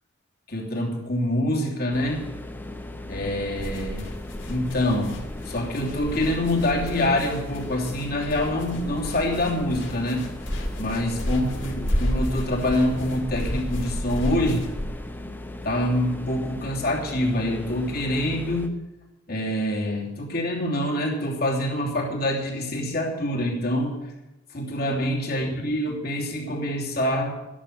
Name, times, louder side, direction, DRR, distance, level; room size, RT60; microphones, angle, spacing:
voice 1, 0.5-2.3 3.1-4.1 4.5-5.2 5.4-10.3 10.8-14.7 15.6-18.7 19.3-23.9 24.5-27.4, left 1 dB, 45° left, -2 dB, 3.0 m, -25 dB
sound 1, 1.9-18.7, left 1 dB, 10° left, 0.8 m, -38 dB
sound 2, 3.6-14.8, equal, 70° left, 2.5 m, -32 dB
12.5 x 11.0 x 6.7 m, 0.99 s
head